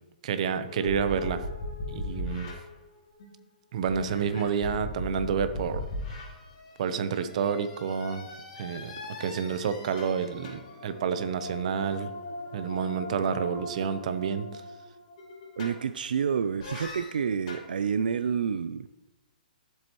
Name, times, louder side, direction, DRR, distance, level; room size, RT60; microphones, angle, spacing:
voice 1, 0.2-1.4 1.9-2.5 3.7-5.8 6.8-8.3 8.6-8.9 9.2-12.1 12.5-14.6, right 7 dB, 50° right, 11 dB, 0.8 m, -29 dB
sound 1, 0.7-3.4 3.9-16.1 16.6-17.7, left 2 dB, 50° left, 3.6 m, -39 dB
voice 2, 15.6-18.9, right 7 dB, 80° right, 11 dB, 0.4 m, -29 dB
13.0 x 7.6 x 3.1 m, 1.1 s
hypercardioid pair, 155°, 5 cm